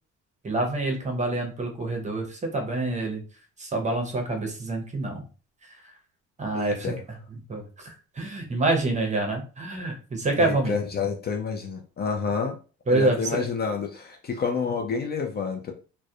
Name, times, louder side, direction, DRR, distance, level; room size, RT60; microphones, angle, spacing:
voice 1, 0.4-3.2 3.6-5.2 6.4-6.9 7.5-10.7 12.9-13.4, right 2 dB, 25° right, 3 dB, 0.7 m, -27 dB
voice 2, 6.5-7.0 10.3-12.6 12.9-15.7, left 5 dB, 35° left, 3 dB, 0.4 m, -29 dB
2.3 x 2.1 x 2.7 m, 0.36 s
supercardioid pair, 90°, 30 cm